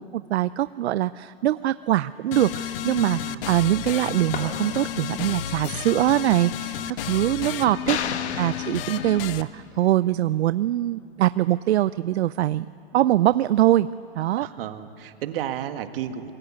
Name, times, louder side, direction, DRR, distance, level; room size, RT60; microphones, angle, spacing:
voice 1, 0.0-12.7 12.9-13.9 14.2-14.5, right 13 dB, 80° right, 15 dB, 0.6 m, -23 dB
sound 1, 2.3-9.4, left 10 dB, 60° left, 1.2 m, -32 dB
voice 2, 3.1-3.6 7.9-8.6 14.3-16.3, right 10 dB, 60° right, 7 dB, 2.0 m, -34 dB
sound 2, 4.2-5.3, left 3 dB, 25° left, 3.2 m, -38 dB
sound 3, 7.9-9.6, left 8 dB, 85° left, 1.6 m, -32 dB
26.5 x 21.5 x 8.8 m, 2.6 s
hypercardioid pair, 145°, 32 cm